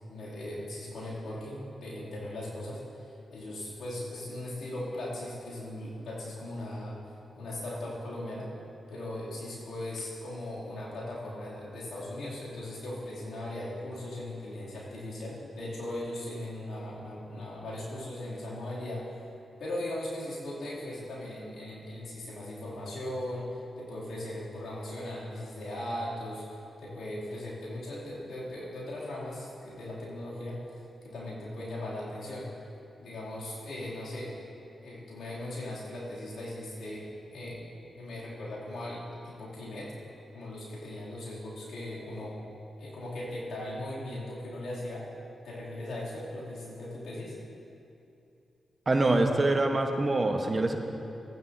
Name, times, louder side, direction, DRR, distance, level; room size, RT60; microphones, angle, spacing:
voice 1, 0.1-7.0 7.3-8.5 8.9-19.0 19.6-30.8 31.0-32.5 33.0-34.3 34.8-37.6 37.9-39.9 40.3-42.4 42.8-45.1 45.4-47.4, left 1 dB, 75° left, -7 dB, 2.7 m, -38 dB
voice 2, 48.9-50.8, right 2 dB, 40° right, 4 dB, 1.1 m, -25 dB
15.5 x 9.4 x 2.7 m, 2.7 s
supercardioid pair, 45°, 0 cm